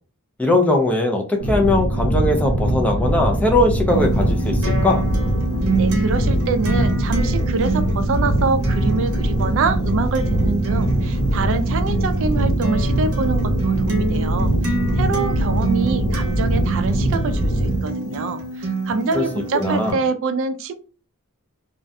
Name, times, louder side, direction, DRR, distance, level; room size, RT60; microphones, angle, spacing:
voice 1, 0.4-5.0 19.1-19.2 19.5-20.0, left 2 dB, 5° left, 0.4 m, -20 dB
sound 1, 1.4-17.8, right 1 dB, 75° left, 0.9 m, -21 dB
Acoustic guitar, 3.9-19.9, right 3 dB, 90° right, 0.7 m, -27 dB
voice 2, 5.8-20.7, right 4 dB, 60° right, 0.3 m, -25 dB
2.4 x 2.1 x 2.6 m
head